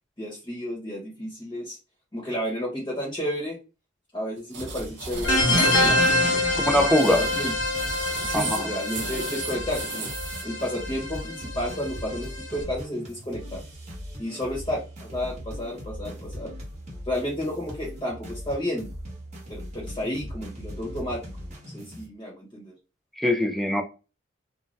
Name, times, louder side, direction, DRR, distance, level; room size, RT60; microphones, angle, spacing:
voice 1, 0.2-1.8 2.1-3.6 4.1-6.1 6.7-6.9 7.2-7.5 8.2-10.1 10.4-13.6 14.2-16.5 17.1-18.9 19.5-21.2 21.7-22.7, equal, 20° left, 1.0 m, -32 dB
sound 1, 4.5-6.2 6.8-10.4, right 4 dB, 60° right, 0.8 m, -36 dB
sound 2, 4.6-22.1, equal, 35° right, 1.0 m, -40 dB
sound 3, 5.2-12.6, left 1 dB, 70° left, 0.9 m, -26 dB
voice 2, 6.7-7.2 8.3-8.7 23.2-23.8, left 1 dB, ahead, 0.3 m, -22 dB
2.6 x 2.1 x 3.1 m
head